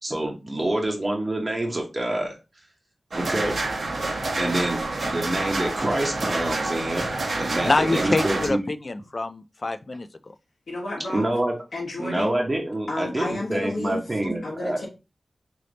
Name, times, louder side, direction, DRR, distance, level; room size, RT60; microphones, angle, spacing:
voice 1, 0.0-2.3 3.1-3.6 4.3-7.1 7.4-8.6 11.1-11.5 12.0-14.8, right 1 dB, 25° right, 0.9 m, -26 dB
sound 1, 3.1-8.5, right 2 dB, 75° right, 0.8 m, -28 dB
voice 2, 7.6-10.1, left 2 dB, 40° left, 0.3 m, -25 dB
voice 3, 10.7-11.3 11.7-12.4 12.9-14.0 14.4-14.9, left 2 dB, 80° left, 1.2 m, -31 dB
3.3 x 2.8 x 3.9 m
wide cardioid pair, 110°, 0 cm